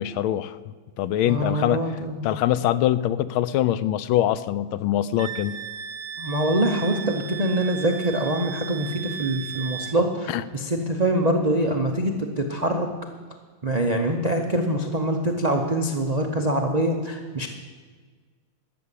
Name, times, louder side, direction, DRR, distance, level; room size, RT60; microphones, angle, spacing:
voice 1, 0.0-1.8 2.2-5.6 10.3-10.4, left 12 dB, 85° left, 15 dB, 1.4 m, -23 dB
voice 2, 1.2-2.3 6.2-12.9 13.6-17.5, right 1 dB, 65° right, 3 dB, 0.4 m, -24 dB
Wind instrument woodwind instrument, 5.2-10.0, right 8 dB, 80° right, 0.8 m, -36 dB
13.0 x 7.0 x 8.3 m, 1.5 s
omnidirectional pair, 2.2 m